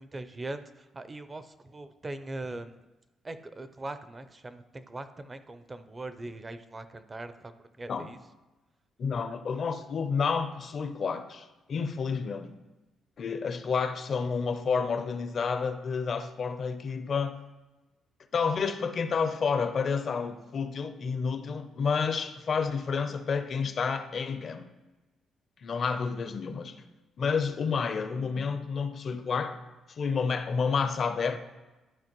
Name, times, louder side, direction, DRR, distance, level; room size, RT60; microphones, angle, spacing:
voice 1, 0.0-2.8 3.2-8.2, right 2 dB, 25° right, 0.5 m, -41 dB
voice 2, 9.0-12.6 13.2-17.4 18.3-24.7 25.6-26.8 27.2-29.6 29.9-31.4, left 5 dB, 50° left, 0.6 m, -30 dB
12.0 x 4.5 x 3.0 m
cardioid pair, 90°, 0 cm